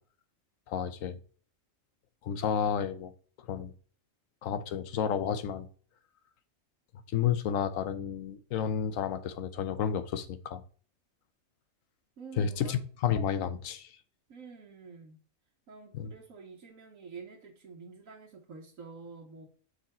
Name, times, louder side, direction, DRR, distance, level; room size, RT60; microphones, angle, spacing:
voice 1, 0.7-1.2 2.2-3.1 3.5-3.7 4.4-5.7 7.1-10.6 12.4-13.9 15.9-16.1, left 8 dB, 85° left, 1.1 m, -31 dB
voice 2, 12.2-12.8 14.3-15.2 15.7-19.5, right 5 dB, 85° right, 1.4 m, -48 dB
6.3 x 4.0 x 4.2 m
omnidirectional pair, 1.4 m